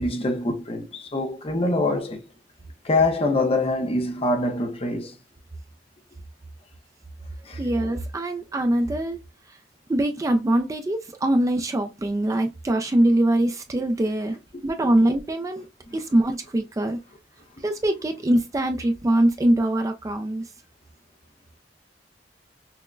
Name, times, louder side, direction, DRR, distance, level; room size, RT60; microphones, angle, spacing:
voice 1, 0.0-2.2 2.8-5.1 7.5-7.6 15.9-16.0, left 2 dB, 35° left, 0.6 m, -24 dB
voice 2, 7.6-9.2 9.5-9.6 9.9-14.4 14.6-15.7 15.9-17.0 17.6-20.5, right 1 dB, 20° right, 0.3 m, -23 dB
5.9 x 2.1 x 2.3 m
head